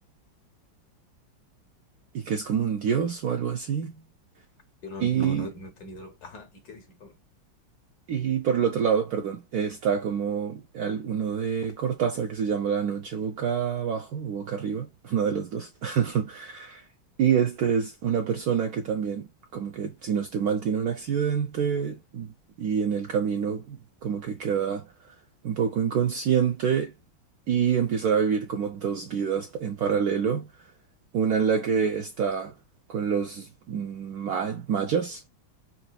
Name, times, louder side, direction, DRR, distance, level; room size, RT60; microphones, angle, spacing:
voice 1, 2.1-4.0 5.0-5.5 8.1-16.8 17.2-22.3 22.6-24.9 25.4-26.9 27.5-30.5 31.1-32.5 32.9-35.2, right 7 dB, 70° right, 0.9 m, -27 dB
voice 2, 4.8-7.2, left 1 dB, 60° left, 1.2 m, -40 dB
4.1 x 2.6 x 2.2 m
omnidirectional pair, 2.1 m